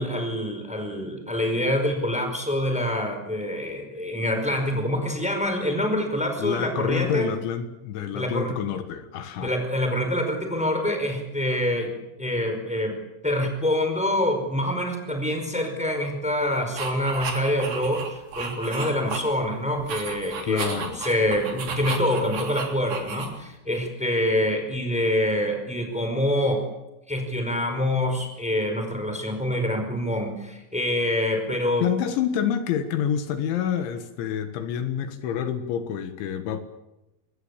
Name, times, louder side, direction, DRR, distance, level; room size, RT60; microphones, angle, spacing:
voice 1, 0.0-7.3 8.1-8.5 9.4-13.0 13.2-26.6 27.1-31.9, left 1 dB, ahead, 5 dB, 4.3 m, -26 dB
voice 2, 6.4-9.5 20.4-21.0 31.8-36.6, left 9 dB, 75° left, 9 dB, 3.8 m, -28 dB
sound 1, 16.8-19.5 19.8-23.6, right 5 dB, 50° right, 5.0 m, -33 dB
25.0 x 21.0 x 8.5 m, 0.96 s
omnidirectional pair, 5.5 m